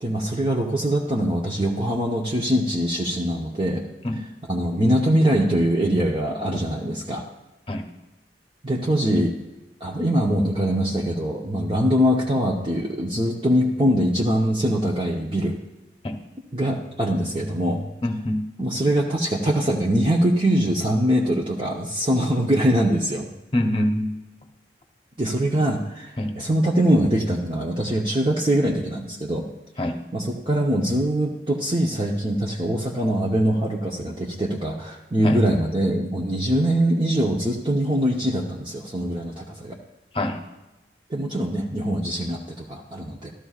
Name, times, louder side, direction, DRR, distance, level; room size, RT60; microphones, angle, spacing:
voice 1, 0.0-3.8 4.2-7.2 8.6-9.3 9.8-15.6 16.5-17.9 18.6-23.3 25.2-29.4 30.1-39.8 41.1-43.3, equal, 30° right, -3 dB, 0.9 m, -23 dB
voice 2, 18.0-18.5 23.5-24.2 26.2-26.3 29.8-30.0 35.2-35.4 40.1-40.4, left 1 dB, 30° left, 4 dB, 0.9 m, -24 dB
14.0 x 12.5 x 2.4 m, 1.1 s
head